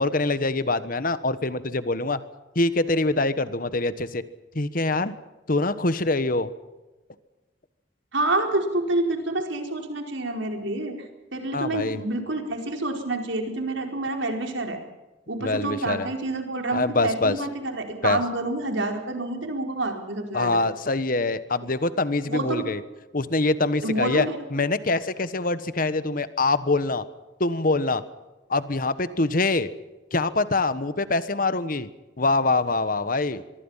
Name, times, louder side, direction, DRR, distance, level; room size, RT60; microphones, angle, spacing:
voice 1, 0.0-2.2 2.5-4.2 4.5-5.1 5.5-6.5 11.5-12.0 15.4-16.1 16.7-17.4 18.0-18.2 20.3-22.8 23.1-27.0 27.4-28.0 28.5-29.7 30.1-31.9 32.2-33.4, left 2 dB, 50° left, 13 dB, 1.3 m, -24 dB
voice 2, 8.1-11.1 11.3-14.8 15.3-20.6 22.2-22.7 23.8-24.4, right 2 dB, 80° right, 3 dB, 4.7 m, -28 dB
24.5 x 23.0 x 5.8 m, 1.1 s
head